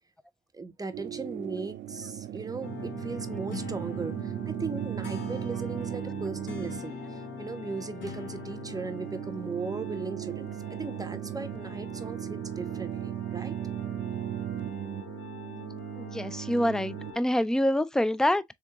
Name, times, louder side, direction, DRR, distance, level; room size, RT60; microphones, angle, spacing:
voice 1, 0.5-13.6, right 3 dB, 20° right, 0.7 m, -38 dB
sound 1, 0.9-17.1, right 12 dB, 70° right, 0.5 m, -37 dB
sound 2, 2.6-17.2, left 5 dB, 70° left, 1.4 m, -43 dB
voice 2, 16.0-18.4, left 1 dB, 5° left, 0.3 m, -26 dB
3.6 x 3.5 x 2.8 m
cardioid pair, 90°, 20 cm